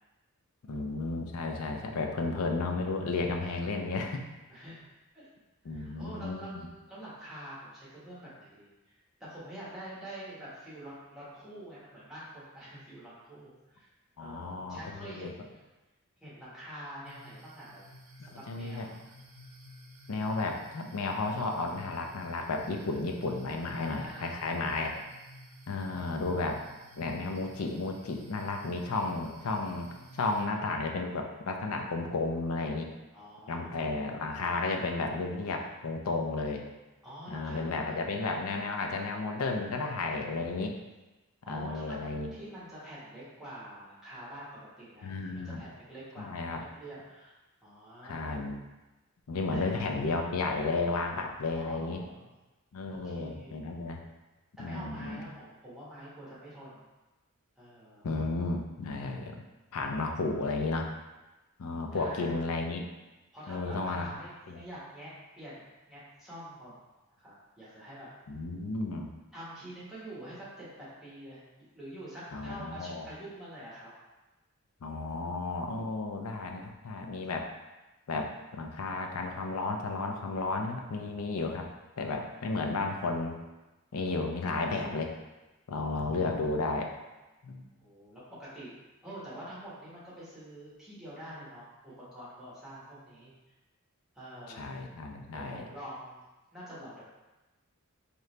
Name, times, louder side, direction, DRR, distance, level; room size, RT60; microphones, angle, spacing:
voice 1, 0.7-4.2 5.7-6.5 14.2-15.3 18.2-18.9 20.1-25.0 25.7-26.6 27.0-29.9 30.1-32.9 33.5-36.6 37.3-40.7 41.5-42.3 45.0-45.6 46.2-46.6 48.0-48.6 49.3-52.0 52.7-54.0 54.6-55.2 58.0-59.4 59.7-60.9 61.6-62.8 63.5-64.1 64.5-64.6 68.3-69.1 72.3-73.1 74.8-77.5 78.1-81.7 82.0-83.4 83.9-85.1 85.7-86.9 87.4-87.6 94.5-95.6, left 3 dB, 70° left, 3 dB, 0.5 m, -33 dB
voice 2, 4.5-4.8 5.1-5.3 5.6-8.9 9.2-13.9 14.2-15.5 16.2-17.8 18.2-19.0 23.7-24.7 25.7-26.0 33.1-34.1 37.0-38.1 41.4-44.5 44.8-47.3 47.6-48.4 49.5-50.0 51.5-52.3 52.9-53.6 54.6-56.9 57.6-58.0 61.9-62.4 63.3-66.8 67.1-68.1 69.3-73.9 75.1-75.5 82.4-82.6 87.8-88.7 89.0-93.3 94.1-94.6 95.3-96.2 96.5-97.0, right 1 dB, ahead, -10 dB, 1.3 m, -46 dB
sound 1, 17.0-30.5, equal, 70° right, 0.7 m, -53 dB
3.7 x 3.0 x 3.2 m, 1.1 s
head